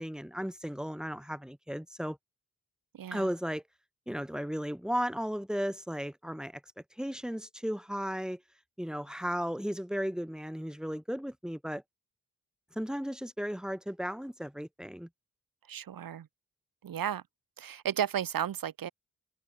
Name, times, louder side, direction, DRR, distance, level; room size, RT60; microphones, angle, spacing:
voice 1, 0.0-2.2 3.1-3.6 4.1-6.6 7.0-8.4 8.8-11.8 12.7-15.1, equal, ahead, 3.2 m, -35 dB
voice 2, 3.0-3.3 15.7-16.3 16.8-17.2 17.6-18.9, right 9 dB, 80° right, 2.4 m, -33 dB
cardioid pair, 55°, 34 cm